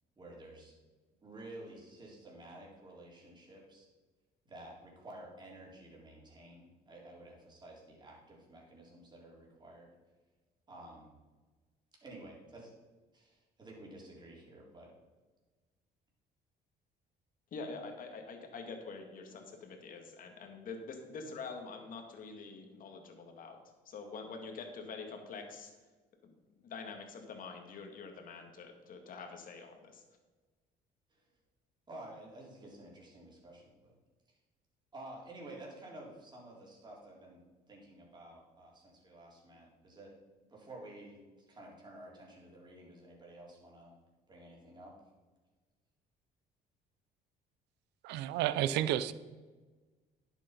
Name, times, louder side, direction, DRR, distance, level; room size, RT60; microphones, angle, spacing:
voice 1, 0.2-0.8 1.2-3.9 4.4-9.9 10.7-11.1 12.0-12.7 13.1-14.9 31.1-31.3 31.9-33.9 34.9-37.4 37.7-40.2 40.5-41.2 41.5-43.9 44.3-44.9, right 1 dB, 25° right, 3.9 m, -51 dB
voice 2, 17.5-23.6 23.9-25.7 26.2-26.3 26.6-30.0, left 4 dB, 55° left, 2.0 m, -46 dB
voice 3, 48.0-49.1, right 12 dB, 85° right, 0.6 m, -31 dB
10.5 x 7.5 x 5.3 m
cardioid pair, 110°, 17 cm